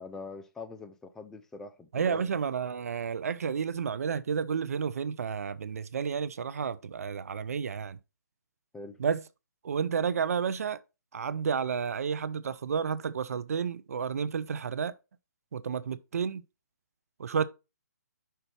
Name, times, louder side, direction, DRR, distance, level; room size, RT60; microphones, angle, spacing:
voice 1, 0.0-2.3 8.7-9.0, left 3 dB, 5° left, 0.5 m, -43 dB
voice 2, 1.9-8.0 9.0-9.2 9.6-10.8 11.1-14.9 15.5-16.4 17.2-17.4, right 6 dB, 55° right, 0.6 m, -31 dB
5.7 x 3.9 x 5.8 m
figure-of-eight pair, 145°, 10 cm